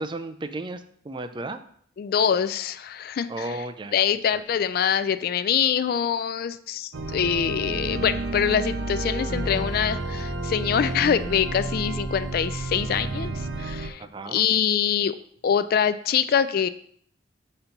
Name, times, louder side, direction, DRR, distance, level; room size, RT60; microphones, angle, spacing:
voice 1, 0.0-1.6 3.3-3.9 14.0-14.4, right 2 dB, 25° right, 9 dB, 0.4 m, -34 dB
voice 2, 2.0-3.6 3.9-13.3 13.6-15.2 15.4-16.7, left 8 dB, 50° left, 14 dB, 0.3 m, -24 dB
sound 1, 6.9-13.9, right 2 dB, 80° right, 0.6 m, -30 dB
5.8 x 4.3 x 5.2 m, 0.62 s
head